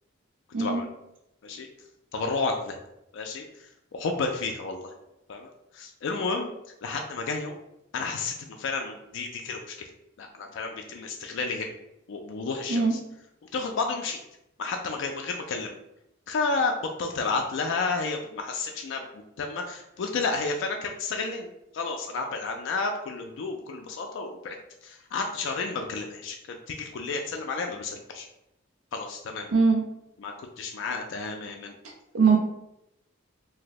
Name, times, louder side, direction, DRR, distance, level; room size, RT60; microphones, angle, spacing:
voice 1, 2.1-2.8 3.1-4.9 5.3-6.5 6.8-7.6 7.9-9.7 10.2-11.7 12.1-13.0 13.5-14.2 14.6-15.7 16.3-24.6 24.8-28.3 28.9-29.5 30.2-31.7, left 4 dB, 65° left, 3 dB, 0.4 m, -31 dB
voice 2, 29.5-29.8 32.1-32.4, right 5 dB, 75° right, 0 dB, 0.5 m, -20 dB
2.6 x 2.1 x 4.0 m, 0.84 s
head